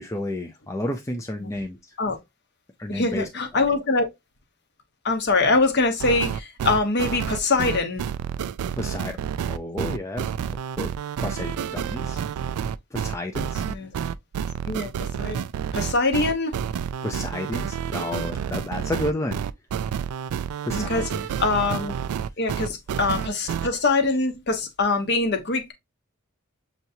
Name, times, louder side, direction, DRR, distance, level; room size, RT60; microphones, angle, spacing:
voice 1, 0.0-1.8 2.8-3.3 3.5-3.7 8.8-9.2 9.5-10.9 11.2-12.2 12.9-13.6 17.0-19.4 20.6-21.3, left 1 dB, 15° left, 0.4 m, -31 dB
voice 2, 2.9-4.1 5.0-8.0 13.7-13.9 14.7-14.9 15.2-15.4 15.7-16.5 20.7-21.1 21.4-21.9 22.4-25.7, left 3 dB, 50° left, 1.0 m, -23 dB
sound 1, 6.0-23.7, right 8 dB, 85° right, 0.3 m, -29 dB
6.7 x 3.0 x 2.7 m
head